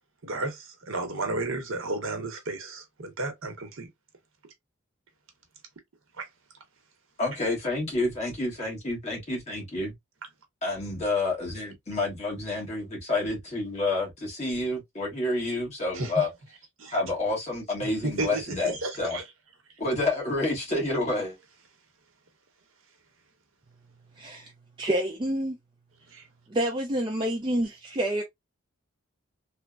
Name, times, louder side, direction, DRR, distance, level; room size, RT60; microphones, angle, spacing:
voice 1, 0.2-3.9 6.2-6.3 15.9-16.2 16.8-17.0 17.8-19.2 26.1-26.3, right 2 dB, 80° right, 0.9 m, -33 dB
voice 2, 7.2-9.9 10.6-16.3 16.9-19.2 19.8-21.4, left 2 dB, 30° left, 1.3 m, -29 dB
voice 3, 24.2-24.5 24.8-25.6 26.5-28.2, right 1 dB, 20° right, 0.4 m, -28 dB
3.2 x 2.0 x 2.2 m
head